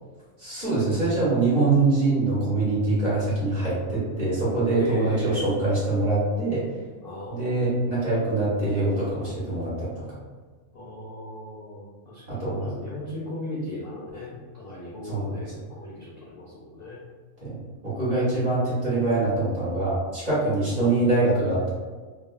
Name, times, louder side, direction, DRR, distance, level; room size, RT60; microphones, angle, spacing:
voice 1, 0.4-6.6 7.3-9.9 12.3-12.7 15.0-15.6 17.4-21.7, right 2 dB, 30° right, -10 dB, 1.2 m, -24 dB
voice 2, 4.7-5.4 7.0-8.4 10.7-17.0 20.7-20.9, left 2 dB, 60° left, -6 dB, 0.6 m, -37 dB
3.5 x 2.1 x 2.2 m, 1.4 s
omnidirectional pair, 1.5 m